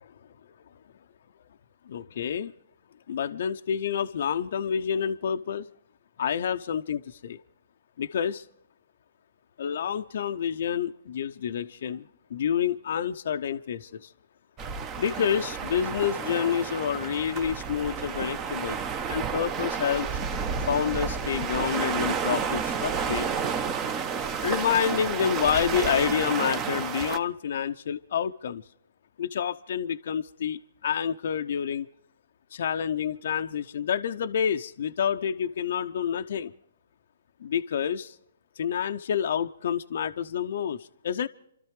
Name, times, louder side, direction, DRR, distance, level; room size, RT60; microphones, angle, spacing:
voice 1, 1.9-2.5 3.1-5.7 6.2-7.4 8.0-8.4 9.6-12.0 12.3-14.1 15.0-18.8 19.1-20.2 20.7-23.3 24.4-28.6 29.2-31.9 32.5-36.5 37.4-38.1 38.6-41.3, left 8 dB, 60° left, 0.6 m, -28 dB
sound 1, 14.6-27.2, right 6 dB, 25° right, 1.0 m, -31 dB
28.5 x 13.0 x 3.3 m
hypercardioid pair, 140°, 0 cm